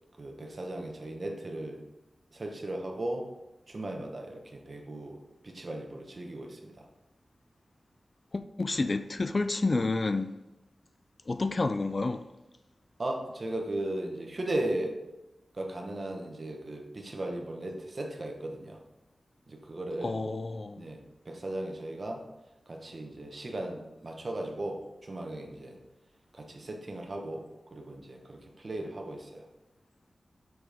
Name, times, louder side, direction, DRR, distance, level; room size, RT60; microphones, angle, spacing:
voice 1, 0.2-1.8 2.3-3.3 3.7-6.9 13.0-15.0 15.5-18.8 19.5-20.2 20.8-22.2 22.7-25.8 26.3-27.4 27.7-29.4, right 1 dB, 45° right, 1.2 m, -37 dB
voice 2, 8.3-10.3 11.3-12.2 20.0-20.8, left 3 dB, 40° left, 0.4 m, -29 dB
7.2 x 6.0 x 3.5 m
wide cardioid pair, 95°, 0 cm